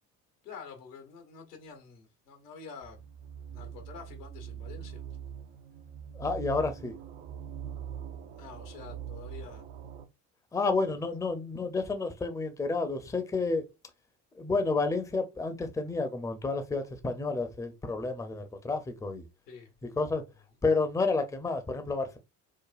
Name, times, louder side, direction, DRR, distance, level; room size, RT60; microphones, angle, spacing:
voice 1, 0.4-3.1 3.5-5.0 8.4-9.6 19.5-19.7, left 5 dB, 85° left, 1.2 m, -47 dB
sound 1, 2.8-10.0, right 9 dB, 70° right, 0.8 m, -43 dB
voice 2, 6.2-6.9 10.5-13.7 14.3-19.3 19.8-20.3 20.6-22.2, left 3 dB, 5° left, 0.6 m, -30 dB
4.9 x 2.1 x 2.5 m
hypercardioid pair, 70°, 47 cm